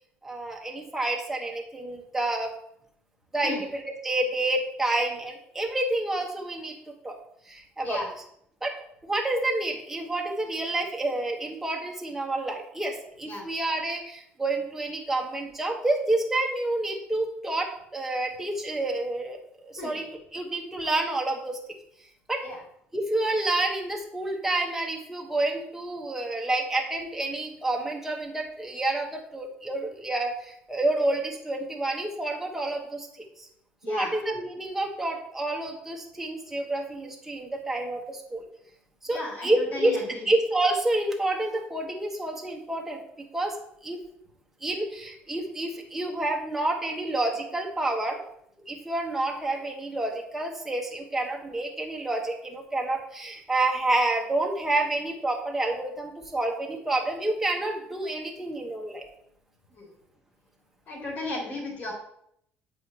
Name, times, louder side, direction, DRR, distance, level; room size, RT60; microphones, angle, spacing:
voice 1, 0.2-2.5 3.3-6.7 7.0-7.1 7.5-8.0 8.6-8.7 9.0-19.4 19.6-21.6 22.3-22.4 22.9-30.3 30.7-33.1 33.9-38.4 39.0-40.0 40.3-43.0 43.3-43.5 43.8-44.0 44.6-48.2 48.7-59.0, right 2 dB, 10° right, 1 dB, 1.2 m, -29 dB
voice 2, 33.8-34.2 39.1-40.3 59.7-59.9 60.9-61.9, left 2 dB, 45° left, -2 dB, 2.7 m, -35 dB
7.9 x 5.0 x 3.0 m, 0.72 s
cardioid pair, 120°, 4 cm